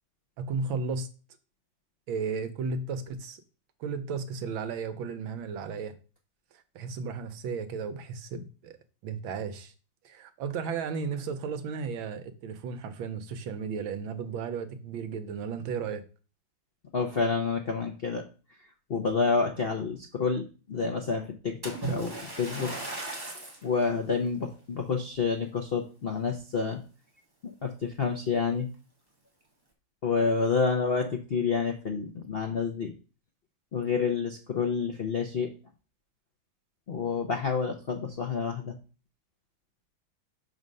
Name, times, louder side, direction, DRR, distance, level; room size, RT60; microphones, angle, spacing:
voice 1, 0.4-1.1 2.1-3.4 3.8-5.9 6.5-8.8 9.0-9.7 10.0-16.0, right 5 dB, 80° right, 1.6 m, -34 dB
voice 2, 16.9-18.2 18.9-22.7 23.6-26.8 27.6-28.7 30.0-32.9 33.7-35.5 36.9-38.8, left 5 dB, 60° left, 0.6 m, -29 dB
Splash splatter, 21.6-23.7 24.3-24.5 25.1-25.2, right 2 dB, 15° right, 1.1 m, -36 dB
6.2 x 4.0 x 5.3 m
omnidirectional pair, 2.2 m